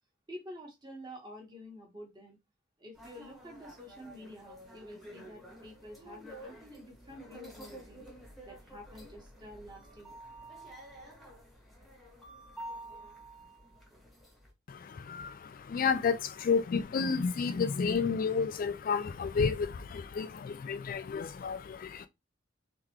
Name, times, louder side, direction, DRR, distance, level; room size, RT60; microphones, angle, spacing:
voice 1, 0.3-2.4 2.8-8.0 8.4-10.2, equal, 20° right, 1.3 m, -49 dB
sound 1, 2.9-14.5, right 1 dB, ahead, 1.1 m, -50 dB
voice 2, 14.7-22.1, left 5 dB, 45° left, 0.3 m, -31 dB
3.8 x 3.4 x 3.0 m
head